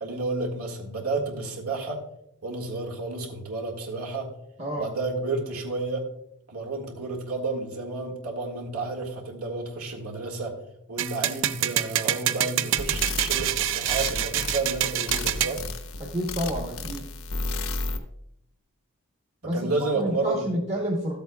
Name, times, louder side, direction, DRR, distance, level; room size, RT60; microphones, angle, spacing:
voice 1, 0.0-2.0 2.4-4.3 4.8-6.1 6.5-10.6 10.9-15.6 19.5-20.5, right 3 dB, 80° right, 0 dB, 1.8 m, -31 dB
voice 2, 4.6-4.9 16.0-17.1 19.4-21.2, equal, 30° right, -3 dB, 1.0 m, -29 dB
sound 1, 11.0-15.6, right 12 dB, 60° right, 0.4 m, -26 dB
sound 2, 12.8-18.0, left 3 dB, 65° left, 0.8 m, -33 dB
13.5 x 8.0 x 2.3 m, 0.79 s
head